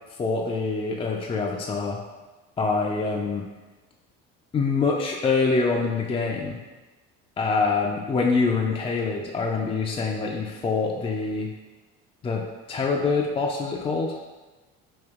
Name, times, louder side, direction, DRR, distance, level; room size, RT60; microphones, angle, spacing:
voice 1, 0.2-2.0 2.6-3.5 4.5-6.6 7.4-11.5 12.2-14.2, left 4 dB, 20° left, -1 dB, 0.3 m, -25 dB
5.2 x 2.7 x 2.4 m, 1.2 s
supercardioid pair, 90°, 31 cm